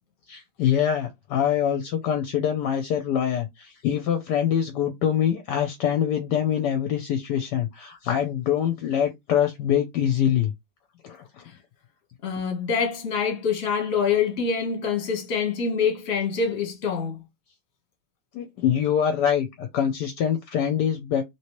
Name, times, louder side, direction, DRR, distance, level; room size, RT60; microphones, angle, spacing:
voice 1, 0.3-10.5 11.0-11.4 18.3-21.2, left 9 dB, 70° left, 1.1 m, -24 dB
voice 2, 12.2-17.2, left 6 dB, 40° left, 1.2 m, -25 dB
3.0 x 3.0 x 3.0 m
omnidirectional pair, 2.1 m